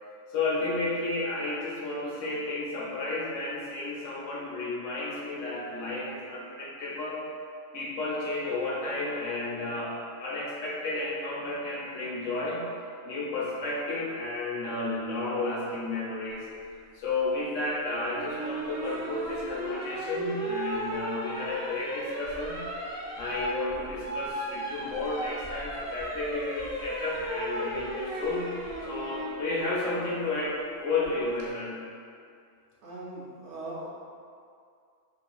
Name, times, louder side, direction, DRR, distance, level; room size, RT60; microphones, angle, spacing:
voice 1, 0.3-7.2 7.7-12.7 13.0-16.5 16.9-22.7 23.2-28.5 28.8-31.8, left 2 dB, 80° left, -5 dB, 1.0 m, -32 dB
sound 1, 18.2-29.4 31.0-31.4, right 1 dB, 85° right, 1.0 m, -35 dB
voice 2, 32.8-33.9, right 2 dB, 70° right, -5 dB, 0.8 m, -39 dB
3.6 x 2.4 x 2.3 m, 2.3 s
omnidirectional pair, 1.3 m